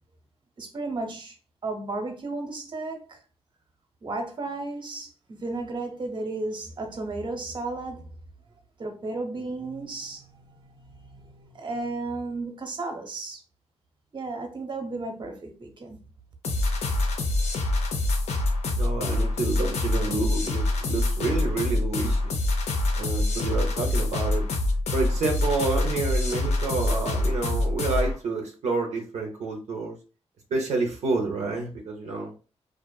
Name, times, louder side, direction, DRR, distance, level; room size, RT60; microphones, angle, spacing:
voice 1, 0.6-1.4 1.6-3.2 4.0-8.1 8.8-13.4 14.1-16.0, right 3 dB, 45° right, 0.7 m, -34 dB
sound 1, 16.4-28.2, left 2 dB, 80° left, 0.5 m, -25 dB
voice 2, 18.8-22.4 23.0-24.5 24.9-29.9 30.5-32.3, right 3 dB, 85° right, 0.5 m, -29 dB
2.5 x 2.4 x 2.2 m
cardioid pair, 75°, 11 cm